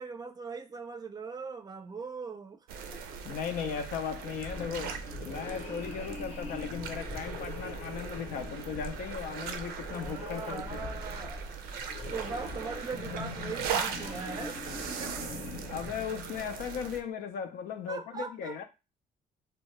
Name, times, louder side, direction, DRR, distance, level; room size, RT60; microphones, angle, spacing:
voice 1, 0.0-2.6 2.9-3.4 9.9-11.5 11.9-14.7 15.0-15.1 17.9-18.6, right 5 dB, 25° right, 0.4 m, -40 dB
sound 1, 2.7-17.0, right 6 dB, 90° right, 0.5 m, -39 dB
voice 2, 3.2-5.0 5.2-10.9 15.7-18.6, left 7 dB, 80° left, 0.5 m, -37 dB
sound 2, 4.3-16.8, left 3 dB, 50° left, 0.7 m, -43 dB
2.7 x 2.1 x 3.1 m
cardioid pair, 95°, 15 cm